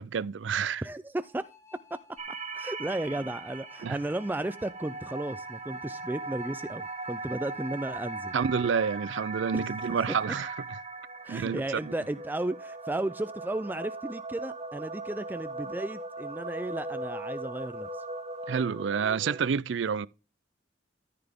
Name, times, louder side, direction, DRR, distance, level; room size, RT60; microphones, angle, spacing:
voice 1, 0.0-0.8 3.8-4.0 8.3-10.5 11.3-11.9 18.5-20.1, right 6 dB, 75° right, 0.4 m, -29 dB
voice 2, 0.8-1.4 2.5-8.3 9.5-9.6 11.2-18.0, right 1 dB, 10° right, 0.3 m, -34 dB
sound 1, 1.2-8.4, left 6 dB, 15° left, 1.6 m, -56 dB
sound 2, 2.2-19.5, right 3 dB, 35° right, 1.4 m, -39 dB
13.5 x 5.8 x 3.6 m
head